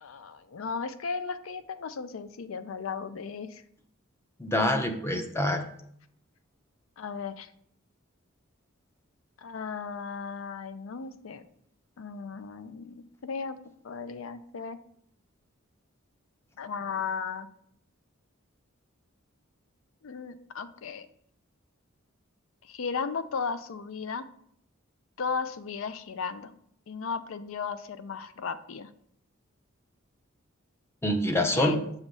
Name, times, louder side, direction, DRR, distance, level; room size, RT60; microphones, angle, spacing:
voice 1, 0.0-3.6 7.0-7.5 9.4-11.4 12.0-13.6 13.8-14.8 16.6-17.5 20.0-21.1 22.6-24.3 25.2-26.5 26.9-28.9 31.5-31.9, left 5 dB, 70° left, 12 dB, 0.4 m, -35 dB
voice 2, 4.4-5.6 31.0-31.8, left 1 dB, 10° left, 6 dB, 0.6 m, -26 dB
6.5 x 3.0 x 5.3 m, 0.67 s
head